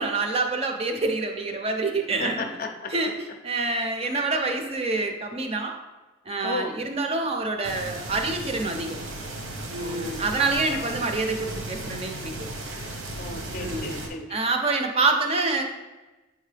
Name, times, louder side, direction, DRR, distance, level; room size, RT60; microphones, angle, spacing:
voice 1, 0.0-2.5 2.9-5.7 6.3-9.0 9.7-12.5 13.6-13.9 14.3-15.6, right 3 dB, 30° right, 4 dB, 0.5 m, -27 dB
voice 2, 2.2-2.9 6.4-6.8 9.8-10.4 10.7-11.0 13.2-14.3, left 3 dB, 45° left, 5 dB, 0.5 m, -34 dB
sound 1, 7.6-14.1, right 2 dB, 80° right, 1.1 m, -35 dB
7.8 x 3.7 x 3.3 m, 1.1 s
head